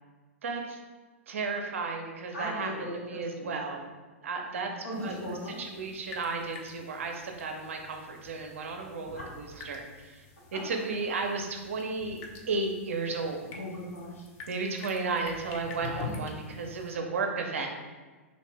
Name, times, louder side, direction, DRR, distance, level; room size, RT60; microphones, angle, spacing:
voice 1, 0.4-0.8 1.3-3.9 4.2-4.7 5.0-10.2 10.5-13.5 14.5-17.7, right 4 dB, 65° right, 3 dB, 0.5 m, -34 dB
voice 2, 2.3-3.5 4.5-5.6 13.5-14.2 16.0-16.2, equal, 80° left, -5 dB, 1.0 m, -38 dB
sound 1, 4.9-16.9, left 4 dB, 35° left, 0.5 m, -46 dB
2.5 x 2.5 x 3.3 m, 1.3 s
figure-of-eight pair, 100°, 8 cm